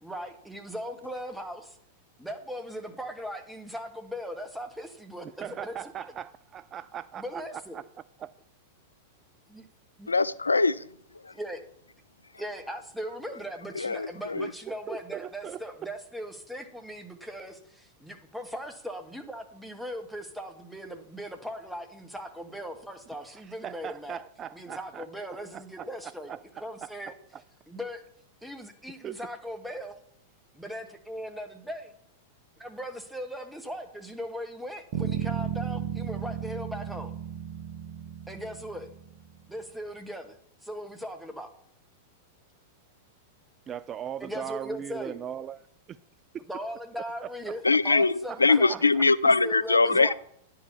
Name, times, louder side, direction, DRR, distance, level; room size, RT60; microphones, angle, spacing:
voice 1, 0.0-1.8 2.2-5.9 7.1-7.8 9.5-9.6 10.0-10.1 11.3-11.6 12.4-24.2 24.5-27.1 27.7-28.0 28.4-30.0 30.5-31.9 32.6-37.1 38.3-38.9 39.5-40.4 40.6-41.5 44.2-45.2 46.5-48.9 49.2-50.1, equal, ahead, 5 dB, 1.4 m, -39 dB
voice 2, 5.2-7.4 7.7-7.8 8.2-8.3 14.4-15.6 23.4-25.1 25.5-27.4 29.0-29.2 43.7-45.6 45.9-46.0 46.3-46.4 47.0-47.6 48.3-49.1, right 9 dB, 30° right, 15 dB, 0.3 m, -39 dB
voice 3, 10.1-10.8 13.8-14.5 47.6-50.1, left 3 dB, 90° left, 19 dB, 0.3 m, -22 dB
Bass guitar, 34.9-39.3, right 9 dB, 50° right, 1.4 m, -34 dB
10.0 x 5.0 x 7.0 m, 0.68 s
figure-of-eight pair, 95°, 0 cm